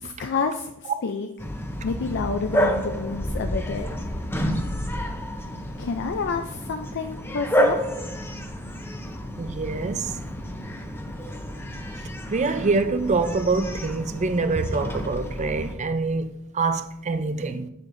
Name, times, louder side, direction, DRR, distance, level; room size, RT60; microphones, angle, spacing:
voice 1, 0.0-1.3 1.8-3.9 5.8-7.8, left 4 dB, 55° left, 0.4 m, -29 dB
Bark, 1.4-15.7, equal, 10° left, 0.7 m, -29 dB
voice 2, 9.4-10.1 12.3-17.7, right 3 dB, 35° right, 0.5 m, -25 dB
8.0 x 7.4 x 2.6 m
head